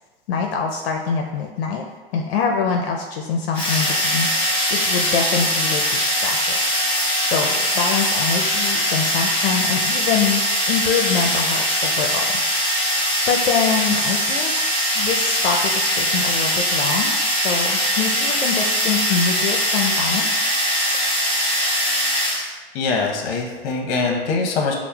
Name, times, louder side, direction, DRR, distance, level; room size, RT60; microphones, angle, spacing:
voice 1, 0.3-1.8 2.1-6.5 7.0-10.4 10.7-12.2 12.8-14.5 14.9-20.3, left 6 dB, 75° left, 1 dB, 0.5 m, -24 dB
sound 1, 3.5-22.5, equal, 5° left, 0.9 m, -21 dB
voice 2, 22.7-24.7, left 4 dB, 45° left, 1 dB, 0.7 m, -23 dB
5.9 x 2.1 x 2.2 m, 1.3 s
hypercardioid pair, 135°, 30 cm